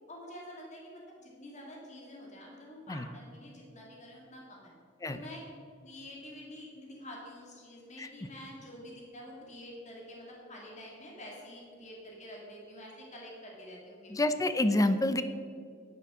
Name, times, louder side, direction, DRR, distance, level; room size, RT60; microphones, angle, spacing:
voice 1, 0.0-4.7 5.1-5.4 5.8-14.1, left 1 dB, 35° left, -3 dB, 2.5 m, -48 dB
voice 2, 14.1-15.2, left 1 dB, 15° left, 10 dB, 0.6 m, -27 dB
11.0 x 7.0 x 6.2 m, 2.2 s
head